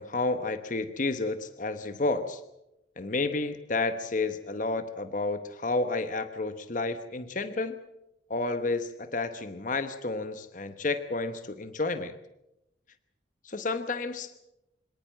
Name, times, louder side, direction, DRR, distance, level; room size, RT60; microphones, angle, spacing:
voice 1, 0.0-2.4 3.0-7.7 8.3-12.2 13.4-14.3, left 3 dB, 45° left, 10 dB, 1.0 m, -31 dB
25.0 x 18.0 x 7.4 m, 0.90 s
head